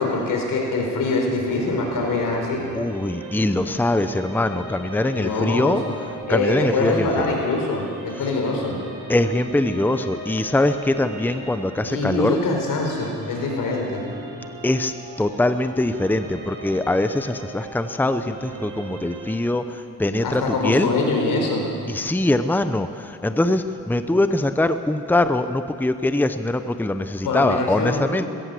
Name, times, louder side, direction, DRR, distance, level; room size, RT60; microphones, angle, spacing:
voice 1, 0.0-2.6 5.1-5.8 6.3-8.8 11.9-14.0 20.2-21.6 27.2-28.1, left 3 dB, 85° left, 1 dB, 4.7 m, -24 dB
sound 1, 1.4-19.4, right 2 dB, 75° right, 5.7 m, -38 dB
voice 2, 2.7-5.8 6.3-7.3 9.1-12.4 14.6-14.9 15.2-19.6 20.0-20.9 21.9-22.9 23.2-28.2, left 1 dB, 5° left, 10 dB, 0.8 m, -22 dB
20.5 x 16.5 x 7.8 m, 2.4 s
cardioid pair, 90°, 32 cm